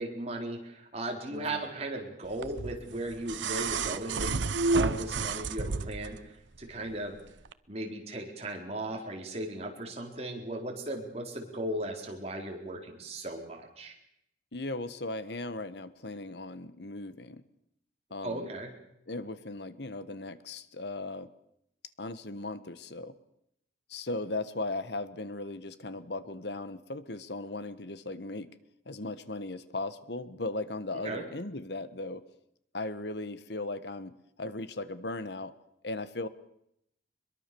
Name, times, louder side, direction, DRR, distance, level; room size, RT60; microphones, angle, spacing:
voice 1, 0.0-7.2 7.7-13.9 18.2-18.7 31.0-31.2, right 1 dB, 35° right, 1 dB, 4.3 m, -37 dB
voice 2, 1.3-1.7 14.5-17.4 18.1-18.5 19.1-21.3 22.0-23.1 23.9-28.5 28.8-32.2 32.7-35.5 35.8-36.3, left 2 dB, 65° left, 13 dB, 1.4 m, -37 dB
sound 1, 2.4-6.2 7.5-7.6, right 3 dB, 80° right, 0.9 m, -30 dB
23.0 x 22.5 x 7.0 m, 0.77 s
head